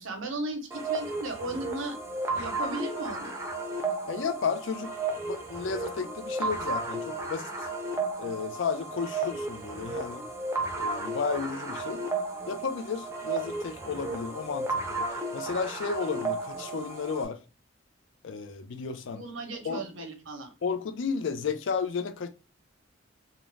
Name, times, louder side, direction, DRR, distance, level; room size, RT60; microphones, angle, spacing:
voice 1, 0.0-2.0 2.3-3.4 19.1-20.5, right 2 dB, 80° right, 0.7 m, -36 dB
sound 1, 0.7-17.3, right 2 dB, 15° right, 0.4 m, -33 dB
voice 2, 4.1-4.9 5.2-7.5 8.2-10.2 10.8-12.0 12.5-15.1 15.3-17.4 18.2-19.2 19.6-20.1 20.6-22.3, left 5 dB, 65° left, 0.4 m, -33 dB
2.4 x 2.0 x 3.2 m
head